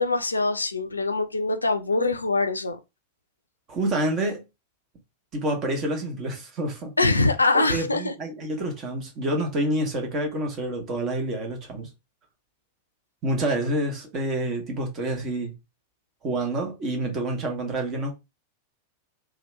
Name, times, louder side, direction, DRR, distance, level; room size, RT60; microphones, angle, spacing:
voice 1, 0.0-2.8 7.0-8.1, left 3 dB, 80° left, 0.4 m, -23 dB
voice 2, 3.7-4.4 5.3-6.9 7.5-11.9 13.2-15.5 16.2-18.1, right 1 dB, 30° right, 1.1 m, -28 dB
2.8 x 2.3 x 3.1 m
figure-of-eight pair, 90°, 0 cm